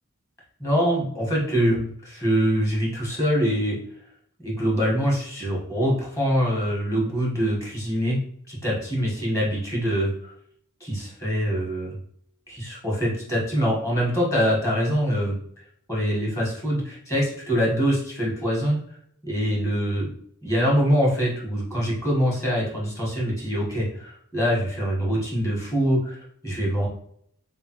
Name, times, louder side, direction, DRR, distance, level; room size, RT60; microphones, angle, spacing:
voice 1, 0.6-3.8 4.4-8.2 8.5-10.3 10.8-11.9 12.5-15.3 15.9-18.8 19.2-20.1 20.4-26.9, equal, 15° left, -4 dB, 1.5 m, -24 dB
4.1 x 3.4 x 3.0 m, 0.67 s
head